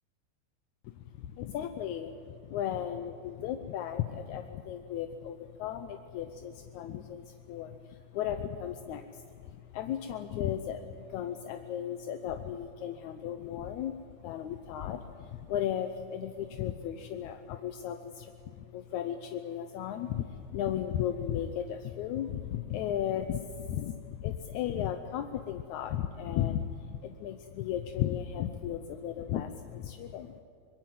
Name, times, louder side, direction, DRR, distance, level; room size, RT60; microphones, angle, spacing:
voice 1, 0.8-13.9 14.2-30.4, left 10 dB, 75° left, 7 dB, 1.9 m, -35 dB
24.0 x 22.0 x 7.7 m, 2.4 s
omnidirectional pair, 4.0 m